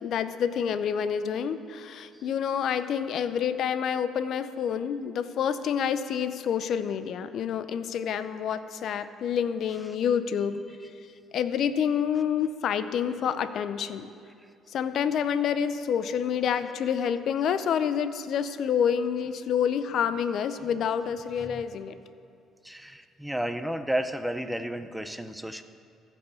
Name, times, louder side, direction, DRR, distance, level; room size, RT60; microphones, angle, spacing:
voice 1, 0.0-10.6 11.3-14.1 14.7-21.9, left 8 dB, 60° left, 12 dB, 0.5 m, -28 dB
voice 2, 22.6-25.6, right 1 dB, 5° right, 9 dB, 0.5 m, -32 dB
15.0 x 5.5 x 6.9 m, 2.5 s
cardioid pair, 110°, 0 cm